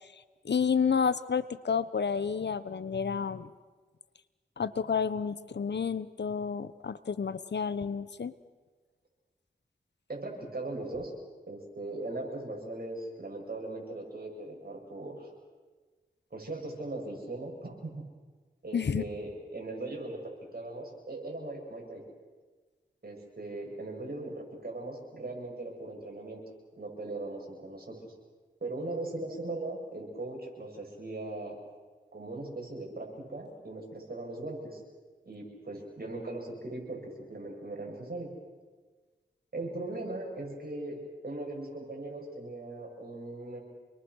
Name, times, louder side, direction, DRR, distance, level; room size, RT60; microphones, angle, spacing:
voice 1, 0.4-3.5 4.6-8.3 18.7-19.0, left 6 dB, 75° left, 15 dB, 1.0 m, -30 dB
voice 2, 10.1-11.1 11.5-15.3 16.3-18.0 18.6-22.0 23.0-26.4 26.8-28.1 28.6-31.6 32.1-34.8 35.2-38.3 39.5-41.0 41.2-43.6, right 2 dB, 55° right, 0 dB, 7.8 m, -39 dB
28.5 x 22.0 x 6.4 m, 1.4 s
cardioid pair, 45°, 18 cm